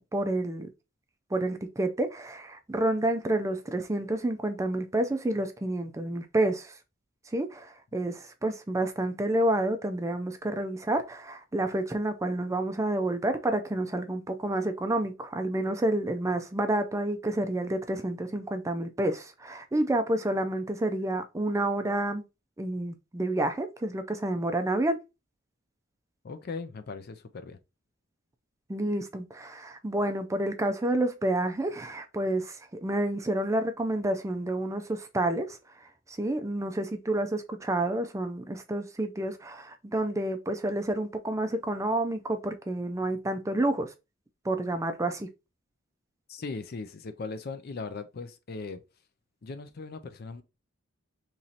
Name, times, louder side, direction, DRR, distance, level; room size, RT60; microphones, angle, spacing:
voice 1, 0.1-0.7 1.3-6.8 7.3-22.2 22.6-25.0 28.7-43.9 44.4-45.3, right 1 dB, 15° right, 0.4 m, -29 dB
voice 2, 26.2-27.6 46.3-48.8 49.4-50.4, left 4 dB, 50° left, 0.5 m, -38 dB
3.0 x 2.8 x 3.9 m
head